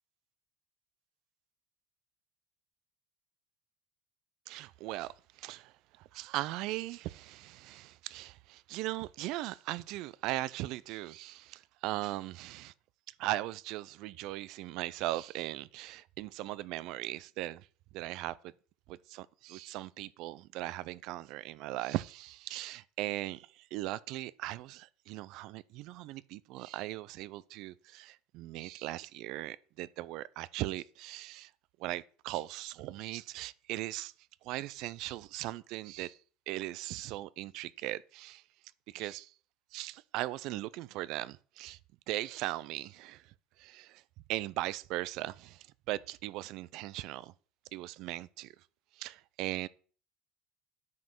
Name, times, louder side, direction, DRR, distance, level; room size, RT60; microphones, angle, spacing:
voice 1, 4.5-12.7 13.2-17.7 17.9-18.5 18.9-31.5 31.8-34.1 34.4-36.2 36.5-38.4 38.9-39.3 39.7-41.8 42.1-44.0 44.3-47.3 47.7-48.5 48.9-49.7, right 16 dB, 65° right, 0.5 m, -39 dB
9.5 x 5.3 x 6.1 m
supercardioid pair, 110°, 0 cm